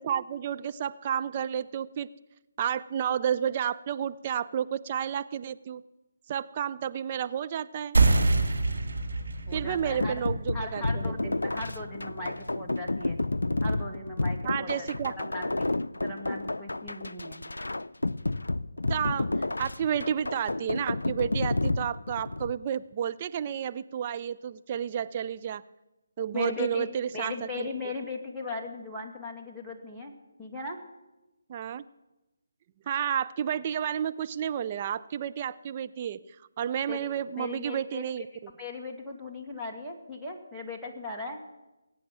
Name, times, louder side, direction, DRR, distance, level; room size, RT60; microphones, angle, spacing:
voice 1, 0.0-2.1 2.6-5.8 6.3-8.0 9.5-11.3 14.4-15.1 18.9-19.3 19.6-25.6 26.2-27.7 31.5-31.8 32.9-36.2 36.6-38.5, right 9 dB, 30° right, 11 dB, 0.5 m, -31 dB
sound 1, 7.9-13.1, right 3 dB, 65° right, 2.5 m, -28 dB
voice 2, 9.5-10.2 10.5-13.2 13.6-14.9 15.2-15.7 16.0-17.4 26.3-26.9 27.1-30.1 30.4-30.8 36.9-37.1 37.4-38.1 38.5-41.4, left 3 dB, ahead, -6 dB, 2.2 m, -38 dB
sound 2, 10.0-22.6, left 2 dB, 75° left, 0.5 m, -31 dB
20.5 x 9.2 x 7.5 m, 1.0 s
figure-of-eight pair, 150°, 0 cm